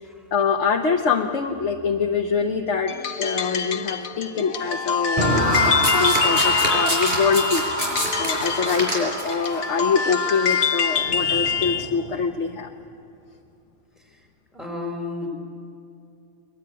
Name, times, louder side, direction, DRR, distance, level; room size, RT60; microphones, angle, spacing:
voice 1, 0.3-7.6 8.2-12.7, left 5 dB, 60° left, 2 dB, 1.4 m, -24 dB
sound 1, 2.9-11.9, left 6 dB, 85° left, 1.4 m, -26 dB
sound 2, 5.2-12.3, equal, 25° right, 3.7 m, -27 dB
Domestic sounds home sounds, 5.5-9.5 10.3-10.5, right 1 dB, 45° right, 6.2 m, -27 dB
voice 2, 14.5-15.3, left 2 dB, ahead, 1 dB, 5.1 m, -33 dB
22.5 x 21.0 x 9.6 m, 2.5 s
omnidirectional pair, 1.4 m